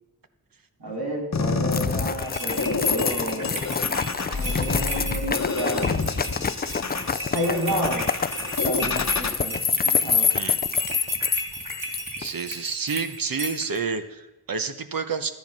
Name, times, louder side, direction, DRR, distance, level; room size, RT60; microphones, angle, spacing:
voice 1, 0.8-3.6 4.2-6.0 7.3-8.1 8.6-10.3, equal, 80° right, -1 dB, 3.0 m, -31 dB
sound 1, 1.3-9.3, left 4 dB, 45° left, 1.0 m, -28 dB
sound 2, 1.7-12.3, left 6 dB, 25° left, 0.3 m, -26 dB
sound 3, 2.2-13.8, right 1 dB, 20° right, 2.7 m, -35 dB
voice 2, 12.2-15.3, right 5 dB, 65° right, 9 dB, 1.0 m, -29 dB
12.5 x 10.0 x 5.4 m, 0.99 s
wide cardioid pair, 95°, 37 cm